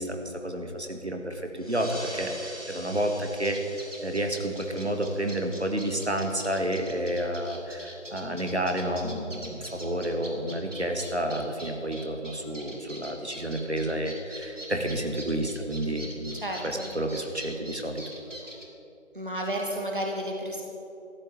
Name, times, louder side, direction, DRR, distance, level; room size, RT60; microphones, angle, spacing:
voice 1, 0.0-18.0, right 1 dB, 60° right, 4 dB, 1.8 m, -30 dB
sound 1, 1.6-6.6, right 1 dB, 30° left, 2.1 m, -45 dB
sound 2, 3.4-18.7, right 1 dB, 75° right, 3.0 m, -44 dB
voice 2, 16.3-16.9 19.1-20.6, right 1 dB, 45° right, 0 dB, 1.6 m, -32 dB
14.0 x 8.7 x 8.6 m, 2.8 s
figure-of-eight pair, 175°, 38 cm